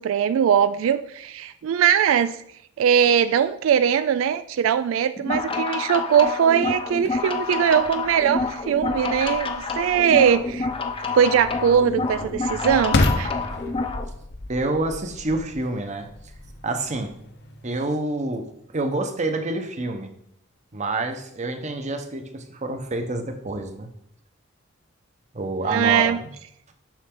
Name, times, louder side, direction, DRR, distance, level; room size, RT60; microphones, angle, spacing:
voice 1, 0.0-2.4 2.8-10.7 11.1-13.3 25.7-26.2, right 8 dB, 85° right, 12 dB, 0.3 m, -21 dB
sound 1, 5.2-14.0, left 4 dB, 25° left, 0.6 m, -28 dB
sound 2, 6.9-17.8, left 2 dB, 60° left, 0.8 m, -32 dB
voice 2, 14.5-16.1 16.6-17.1 17.6-18.5 18.7-20.1 20.7-23.9 25.3-26.3, right 2 dB, 35° right, 6 dB, 0.9 m, -27 dB
7.3 x 6.1 x 3.7 m, 0.74 s
head